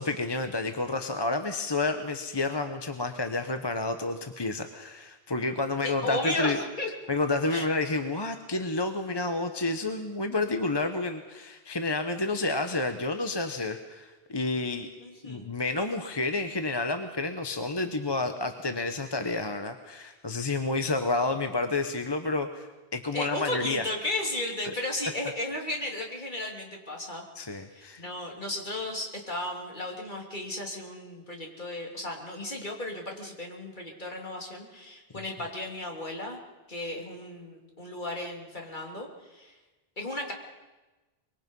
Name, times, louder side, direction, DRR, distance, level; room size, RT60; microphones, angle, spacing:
voice 1, 0.0-6.6 7.1-14.9 15.2-23.8 27.3-28.0 35.1-35.2, left 2 dB, 25° left, 7 dB, 1.0 m, -30 dB
voice 2, 5.8-6.9 7.5-7.6 15.0-15.5 23.1-27.2 27.7-36.4 36.7-39.5 40.0-40.3, left 1 dB, 45° left, 0 dB, 3.2 m, -34 dB
24.5 x 22.5 x 5.5 m, 1.2 s
omnidirectional pair, 1.1 m